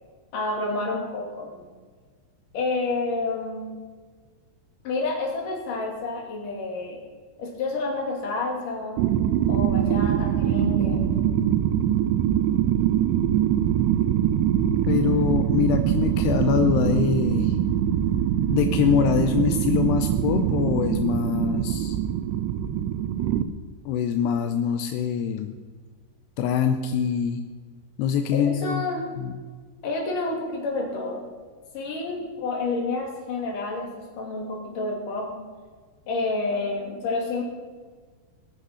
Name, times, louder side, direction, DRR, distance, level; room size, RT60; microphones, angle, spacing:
voice 1, 0.3-1.7 2.5-3.8 4.8-7.0 7.4-9.1 9.5-11.1 28.3-29.1 29.8-31.3 31.7-35.5 36.1-37.4, left 3 dB, 50° left, 0 dB, 3.8 m, -29 dB
sound 1, 9.0-23.4, right 10 dB, 85° right, 2.4 m, -23 dB
voice 2, 14.9-17.6 18.5-22.0 23.9-25.5 26.4-27.4 28.0-28.8 29.2-29.4, left 8 dB, 80° left, 7 dB, 2.5 m, -24 dB
19.5 x 9.9 x 5.7 m, 1.5 s
omnidirectional pair, 5.6 m